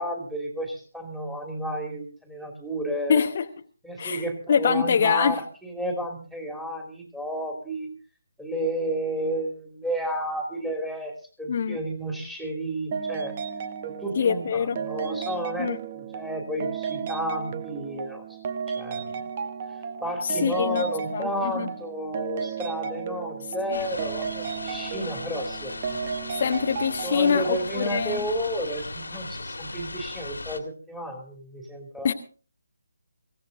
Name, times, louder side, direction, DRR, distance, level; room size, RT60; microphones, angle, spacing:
voice 1, 0.0-3.3 3.8-7.9 8.4-11.1 11.4-13.4 13.8-18.2 18.7-19.0 20.0-25.7 27.0-32.1, right 1 dB, ahead, 2 dB, 2.6 m, -32 dB
voice 2, 3.1-3.5 4.0-4.2 4.5-5.4 11.5-11.8 14.1-14.8 15.6-15.8 20.2-21.7 23.7-23.8 26.3-28.3 32.0-32.1, left 6 dB, 40° left, 5 dB, 0.9 m, -24 dB
sound 1, 12.9-27.7, right 6 dB, 30° right, 1.0 m, -34 dB
sound 2, 23.7-30.6, left 2 dB, 65° left, 1.8 m, -37 dB
24.0 x 16.0 x 2.6 m, 0.39 s
figure-of-eight pair, 145°, 0 cm